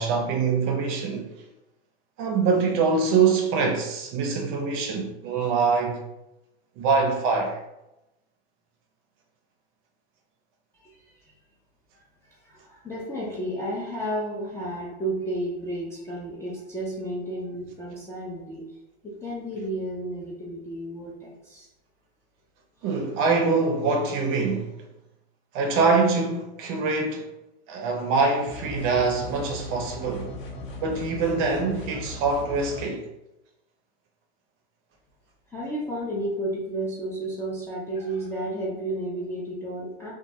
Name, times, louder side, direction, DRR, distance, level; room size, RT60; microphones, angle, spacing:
voice 1, 0.0-1.3 2.2-6.0 6.8-7.6 22.8-24.7 25.5-27.3 27.7-30.3 30.8-33.1, right 4 dB, 40° right, 0.5 m, -24 dB
voice 2, 10.7-11.3 12.3-18.7 19.0-21.7 22.8-22.9 35.5-40.1, right 1 dB, 10° left, 0.3 m, -32 dB
sound 1, 28.5-32.9, left 1 dB, 55° left, 0.6 m, -37 dB
2.3 x 2.0 x 2.7 m
hypercardioid pair, 115°, 31 cm